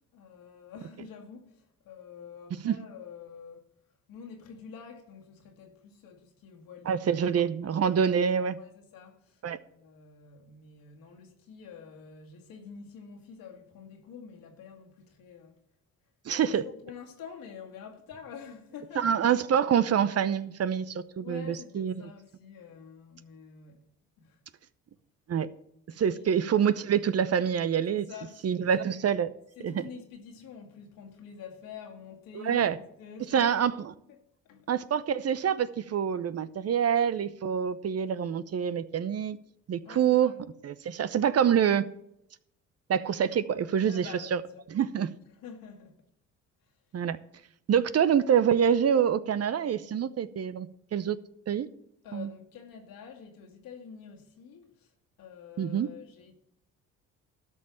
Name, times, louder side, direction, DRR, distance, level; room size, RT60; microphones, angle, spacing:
voice 1, 0.1-3.6 4.1-8.0 8.6-9.4 9.7-15.6 16.4-19.1 21.2-23.8 24.2-24.4 25.9-26.3 27.9-28.5 28.8-29.0 29.6-33.6 34.1-34.2 34.5-34.7 39.8-40.4 43.9-44.6 45.3-46.0 52.0-54.9 55.2-56.3, left 6 dB, 70° left, 2.2 m, -47 dB
voice 2, 6.9-8.6 9.4-9.6 16.3-16.6 19.0-22.1 25.3-25.5 26.0-28.0 28.4-29.3 29.6-29.9 32.4-32.8 33.3-33.9 34.7-39.4 39.7-40.3 40.6-41.8 42.9-44.4 44.7-45.1 46.9-47.2 47.7-51.2 51.5-51.7 52.1-52.3 55.6-55.9, right 8 dB, 45° right, 0.8 m, -26 dB
13.0 x 5.4 x 7.1 m
hypercardioid pair, 60°, 35 cm